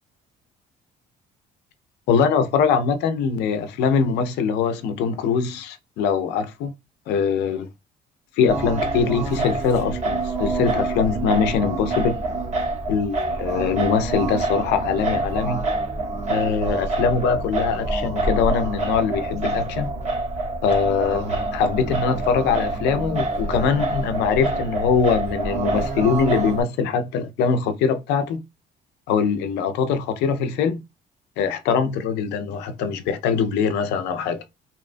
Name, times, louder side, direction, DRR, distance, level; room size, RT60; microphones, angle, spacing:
voice 1, 2.1-6.7 7.1-7.7 8.4-12.2 12.9-15.7 16.3-19.9 20.6-28.4 29.1-30.8 31.4-34.4, left 6 dB, 85° left, 0.5 m, -22 dB
Singing, 8.5-26.6, right 2 dB, 45° right, 0.8 m, -26 dB
2.8 x 2.2 x 2.5 m
cardioid pair, 110°, 17 cm